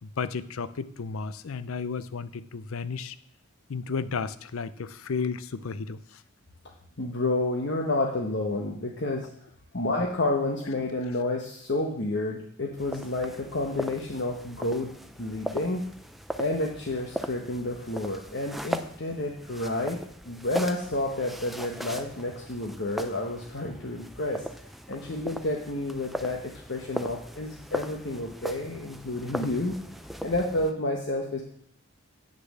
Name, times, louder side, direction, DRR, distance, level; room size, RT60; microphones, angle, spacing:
voice 1, 0.0-3.2 3.7-6.0, left 5 dB, 75° left, 15 dB, 0.5 m, -33 dB
voice 2, 7.0-9.3 9.7-14.9 15.2-15.8 16.4-20.0 20.2-29.8 30.2-31.4, left 2 dB, 55° left, 1 dB, 1.1 m, -30 dB
sound 1, 12.8-30.7, equal, ahead, 0.4 m, -39 dB
7.7 x 6.7 x 7.2 m, 0.66 s
head